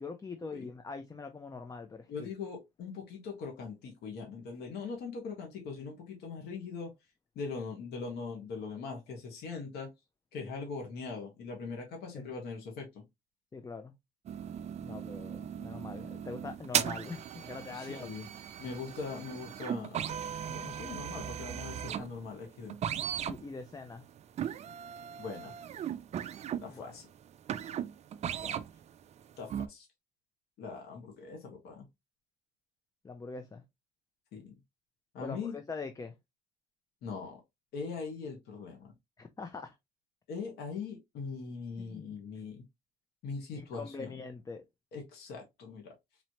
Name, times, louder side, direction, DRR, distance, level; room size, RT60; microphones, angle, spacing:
voice 1, 0.0-2.3 12.1-12.3 13.5-13.9 14.8-18.1 23.3-24.0 26.7-26.8 28.4-28.6 33.0-33.6 35.2-36.1 39.2-39.8 41.8-42.2 43.6-44.6, left 4 dB, 20° left, 0.5 m, -43 dB
voice 2, 2.1-6.9 7.3-9.9 10.3-13.0 17.7-18.3 18.6-20.1 20.5-22.8 25.2-25.5 26.6-27.1 29.4-29.9 30.6-31.9 34.3-34.6 35.1-35.5 37.0-37.4 37.7-38.9 40.3-42.6 43.2-44.2 44.9-45.9, left 4 dB, 75° left, 1.5 m, -41 dB
sound 1, 14.3-28.8 29.2-29.7, right 9 dB, 40° right, 0.4 m, -37 dB
4.0 x 3.1 x 2.8 m
cardioid pair, 110°, 17 cm